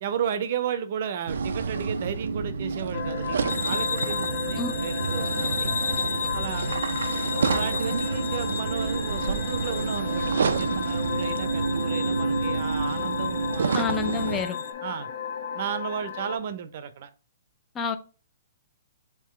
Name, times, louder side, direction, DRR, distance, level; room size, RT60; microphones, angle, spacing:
voice 1, 0.0-5.7 6.3-6.7 7.4-14.2 14.5-15.1 15.5-17.1, right 8 dB, 45° right, 0.6 m, -34 dB
sound 1, 1.3-14.4, right 4 dB, 85° right, 0.5 m, -28 dB
sound 2, 2.9-16.4, left 7 dB, 65° left, 1.0 m, -34 dB
sound 3, 3.5-14.7, left 5 dB, 85° left, 0.7 m, -35 dB
voice 2, 13.7-14.6 17.7-18.0, left 5 dB, 15° left, 0.4 m, -28 dB
3.7 x 2.9 x 4.3 m
hypercardioid pair, 165°, 0 cm